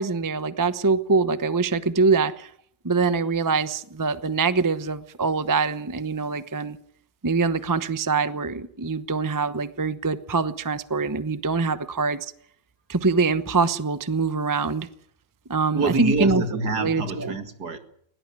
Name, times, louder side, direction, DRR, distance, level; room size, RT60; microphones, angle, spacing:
voice 1, 0.0-2.5 2.8-6.8 7.2-12.3 12.9-14.9 15.5-16.4 16.8-17.4, right 4 dB, 25° right, 0.4 m, -24 dB
voice 2, 15.7-17.8, right 3 dB, 55° right, 2.5 m, -26 dB
20.5 x 18.0 x 9.9 m
omnidirectional pair, 2.0 m